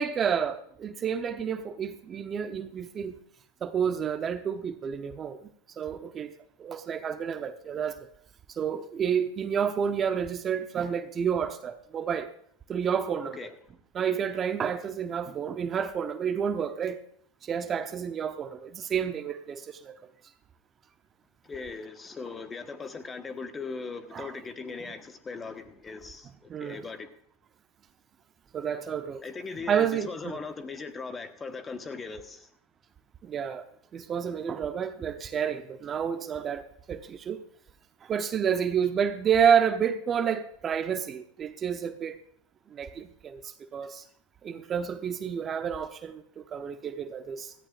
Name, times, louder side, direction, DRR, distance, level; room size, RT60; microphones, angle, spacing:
voice 1, 0.0-3.2 3.6-5.5 5.8-6.3 6.6-8.0 8.5-12.3 12.7-13.4 13.9-17.0 17.4-19.9 24.1-24.3 26.5-26.8 28.5-29.2 29.7-30.4 33.2-33.6 33.9-36.6 36.9-37.4 38.0-42.2 42.7-44.0 44.4-47.5, right 7 dB, 30° right, 0.8 m, -29 dB
voice 2, 21.4-27.1 29.2-32.5, left 4 dB, 20° left, 1.3 m, -39 dB
17.0 x 14.0 x 2.5 m
hypercardioid pair, 105°, 0 cm